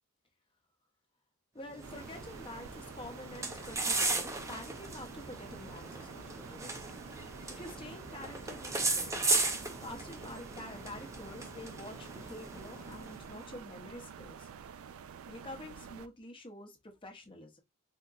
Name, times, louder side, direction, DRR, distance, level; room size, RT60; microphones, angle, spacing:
voice 1, 1.5-6.9 7.5-9.2 9.8-14.5 14.9-15.0 15.3-17.6, left 1 dB, 25° left, 0.7 m, -48 dB
sound 1, 1.7-13.5, right 3 dB, 15° right, 0.5 m, -37 dB
sound 2, 1.8-16.1, right 7 dB, 70° right, 0.3 m, -49 dB
3.6 x 2.8 x 2.4 m
head